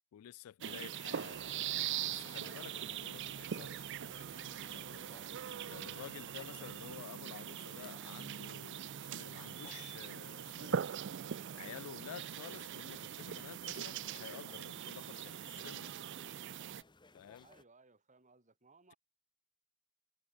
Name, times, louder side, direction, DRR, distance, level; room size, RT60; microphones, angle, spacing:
voice 1, 0.1-10.8 11.6-16.0 17.1-17.5, left 10 dB, 70° left, 0.3 m, -52 dB
sound 1, 0.6-16.8, right 9 dB, 55° right, 0.5 m, -42 dB
sound 2, 1.0-17.6, left 3 dB, 20° left, 1.5 m, -62 dB
sound 3, 15.5-15.6, right 1 dB, 70° right, 4.5 m, -75 dB
voice 2, 17.4-19.0, right 3 dB, 35° right, 4.1 m, -64 dB
head